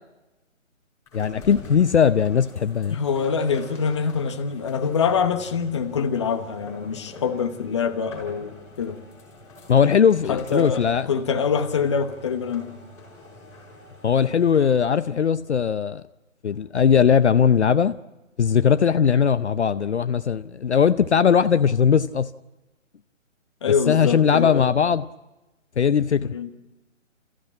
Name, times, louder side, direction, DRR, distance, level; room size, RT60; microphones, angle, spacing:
voice 1, 1.1-3.0 9.7-11.1 14.0-16.0 16.4-18.0 18.4-22.3 23.9-25.0 25.8-26.3, left 7 dB, 60° left, 0.7 m, -19 dB
sound 1, 1.1-14.8, left 2 dB, 5° left, 5.2 m, -45 dB
voice 2, 2.9-9.0 10.3-12.7 23.6-24.7 26.2-26.5, left 6 dB, 20° left, 1.0 m, -25 dB
28.0 x 15.0 x 8.5 m
hypercardioid pair, 160°, 39 cm